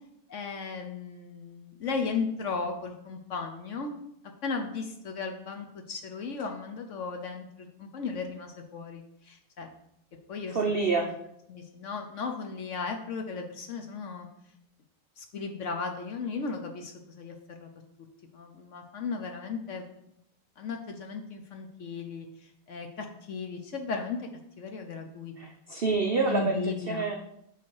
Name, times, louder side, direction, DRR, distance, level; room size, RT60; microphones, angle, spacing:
voice 1, 0.3-3.9 4.4-9.7 10.3-10.6 11.5-14.3 15.2-17.7 18.3-19.8 20.6-24.3 24.6-25.5 26.3-27.1, left 4 dB, 60° left, 3 dB, 0.8 m, -36 dB
voice 2, 10.5-11.1 25.4-26.6 26.9-27.2, right 4 dB, 85° right, 2 dB, 0.5 m, -27 dB
5.9 x 5.8 x 4.6 m, 0.78 s
omnidirectional pair, 1.9 m